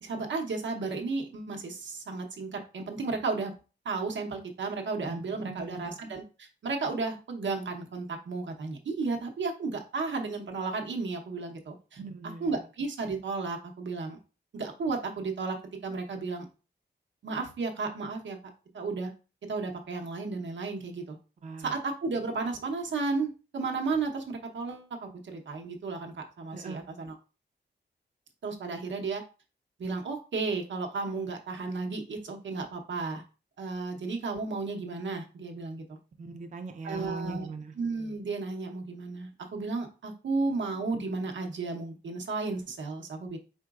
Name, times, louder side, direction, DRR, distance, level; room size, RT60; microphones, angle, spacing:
voice 1, 0.0-3.5 3.8-12.0 12.4-14.2 14.5-15.6 15.8-16.5 17.2-18.4 18.7-19.1 19.5-21.2 21.6-27.1 28.4-29.2 29.8-33.2 33.6-35.8 36.8-37.5 37.7-43.4, right 4 dB, 90° right, 3 dB, 0.8 m, -33 dB
voice 2, 5.1-5.9 12.0-12.5 21.4-21.7 26.5-26.8 36.2-37.7, right 3 dB, 40° right, 5 dB, 0.4 m, -40 dB
4.4 x 3.9 x 2.4 m, 0.33 s
wide cardioid pair, 170°, 19 cm